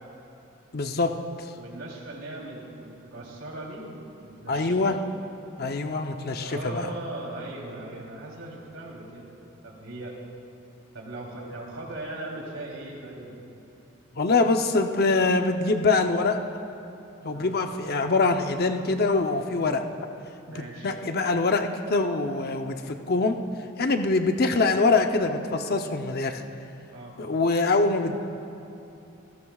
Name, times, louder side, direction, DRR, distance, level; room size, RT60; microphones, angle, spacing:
voice 1, 0.7-1.1 1.4-1.5 4.5-4.9 5.6-6.9 14.1-16.4 17.2-19.8 20.5-23.4 23.8-26.4 27.2-28.1, left 3 dB, 50° left, 5 dB, 0.7 m, -24 dB
voice 2, 1.5-5.0 6.4-9.3 9.6-10.1 10.9-13.4 17.3-17.6 20.4-20.9 26.9-27.2, right 2 dB, 80° right, -2 dB, 3.3 m, -39 dB
28.0 x 15.5 x 2.4 m, 3.0 s
head